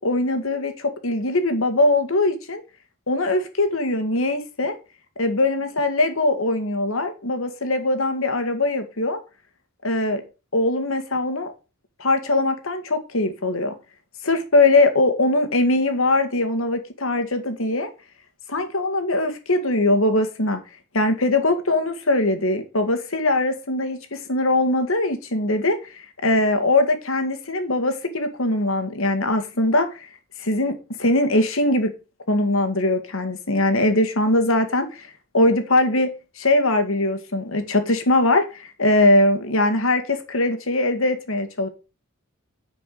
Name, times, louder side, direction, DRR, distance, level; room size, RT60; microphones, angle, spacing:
voice 1, 0.0-2.6 3.1-4.8 5.2-9.2 9.8-10.2 10.5-11.5 12.0-13.7 14.2-17.9 18.5-20.6 20.9-30.1 30.4-31.9 32.3-35.1 35.3-41.7, left 2 dB, 70° left, 1.9 m, -21 dB
10.0 x 5.2 x 6.7 m
head